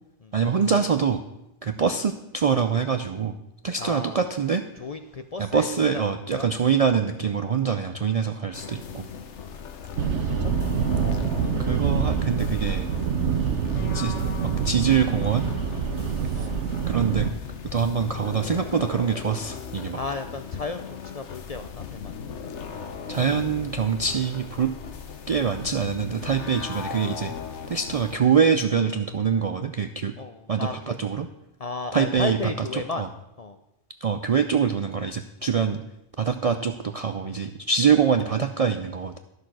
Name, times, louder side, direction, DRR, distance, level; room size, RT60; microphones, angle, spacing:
voice 1, 0.3-1.2 1.6-3.3 3.6-4.6 5.4-9.0 10.7-10.8 11.4-12.9 13.7-14.1 14.4-15.5 16.8-17.3 17.7-20.0 23.1-24.7 25.3-27.3 27.7-30.1 30.5-31.3 31.9-32.4 32.7-33.1 34.0-35.8 36.2-39.2, right 6 dB, 55° right, 7 dB, 0.4 m, -24 dB
voice 2, 3.8-4.2 4.8-6.5 9.4-10.0 10.3-10.8 16.3-16.5 19.9-22.2 30.2-31.0 31.6-33.1 33.4-33.6 36.2-36.3, left 3 dB, 45° left, 7 dB, 0.5 m, -34 dB
sound 1, 8.5-28.2, left 6 dB, 80° left, 1.2 m, -38 dB
sound 2, 10.0-17.3, right 6 dB, 80° right, 1.1 m, -26 dB
11.5 x 6.5 x 6.1 m, 0.87 s
omnidirectional pair, 1.2 m